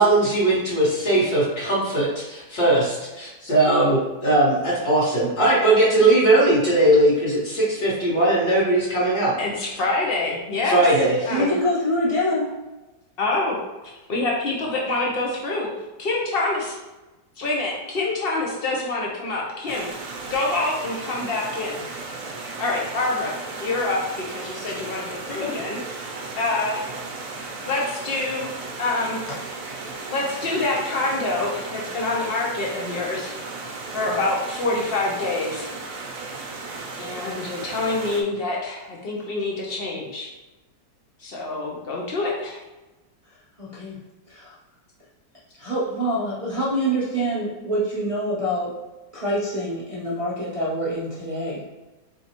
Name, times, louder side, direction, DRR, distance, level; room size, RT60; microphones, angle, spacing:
voice 1, 0.0-9.3 10.6-11.2, right 2 dB, 60° left, -8 dB, 1.7 m, -19 dB
voice 2, 9.4-10.8 11.2-11.5 13.2-13.6 14.1-15.7 16.0-16.6 17.4-21.8 22.6-23.3 23.6-26.1 26.4-27.0 27.6-28.5 28.8-29.3 30.1-33.3 33.9-35.7 37.0-40.3 41.2-42.6, left 2 dB, 90° left, -2 dB, 0.5 m, -26 dB
voice 3, 11.3-12.5 25.4-25.6 29.3-29.4 43.6-44.0 44.3-44.5 45.6-48.7 49.1-51.6, equal, 40° right, -8 dB, 0.5 m, -25 dB
Stream, 19.7-38.2, right 3 dB, 65° right, 0.9 m, -35 dB
4.2 x 3.6 x 2.9 m, 1.1 s
omnidirectional pair, 1.9 m